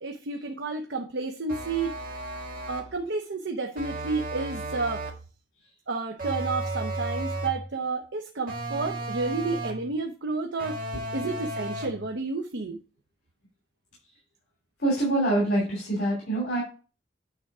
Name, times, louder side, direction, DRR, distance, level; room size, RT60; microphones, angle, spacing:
voice 1, 0.0-2.0 2.7-5.0 5.9-10.8 11.1-12.8, right 3 dB, 85° right, 4 dB, 0.7 m, -31 dB
sound 1, 1.5-3.0 3.8-5.3 6.2-7.7 8.5-9.9 10.6-12.0, right 1 dB, 50° right, 1.6 m, -34 dB
voice 2, 14.8-16.6, right 1 dB, 70° left, -4 dB, 2.7 m, -25 dB
9.0 x 3.6 x 4.8 m, 0.35 s
head